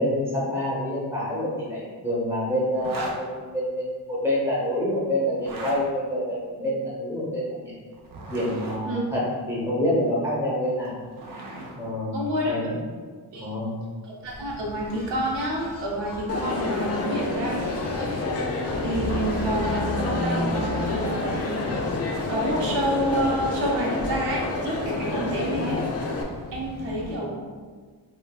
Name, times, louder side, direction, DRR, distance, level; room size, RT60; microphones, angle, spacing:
voice 1, 0.0-7.7 8.3-11.0 11.8-12.2 12.5-12.8 13.4-13.7, left 1 dB, 5° right, -7 dB, 0.9 m, -27 dB
sound 1, 2.8-3.2 5.3-5.8 7.9-8.8 10.6-11.7, right 2 dB, 55° right, 0.6 m, -36 dB
voice 2, 12.1-12.5 13.3-13.5 14.0-17.6 18.8-21.4 22.3-25.8 26.5-27.5, equal, 80° right, -3 dB, 0.8 m, -28 dB
Engine, 14.2-27.2, left 1 dB, 20° left, 0.8 m, -35 dB
Crowd, 16.3-26.2, left 3 dB, 40° left, 0.4 m, -29 dB
3.5 x 2.3 x 2.3 m, 1.5 s
cardioid pair, 115°, 42 cm